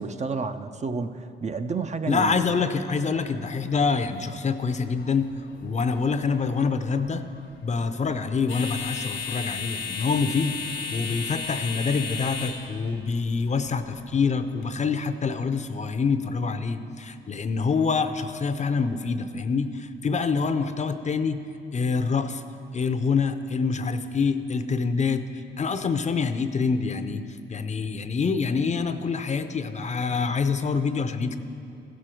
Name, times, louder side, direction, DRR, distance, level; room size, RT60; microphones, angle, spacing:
voice 1, 0.0-2.6, right 4 dB, 35° right, 8 dB, 0.5 m, -30 dB
voice 2, 2.1-5.3 5.6-7.2 7.6-10.6 10.9-21.4 21.7-22.4 22.7-25.2 25.6-27.2 27.5-31.4, left 5 dB, 35° left, 10 dB, 0.6 m, -26 dB
sound 1, 3.3-14.7, left 5 dB, 75° left, 1.0 m, -37 dB
15.0 x 6.3 x 4.5 m, 2.6 s
cardioid pair, 70°, 20 cm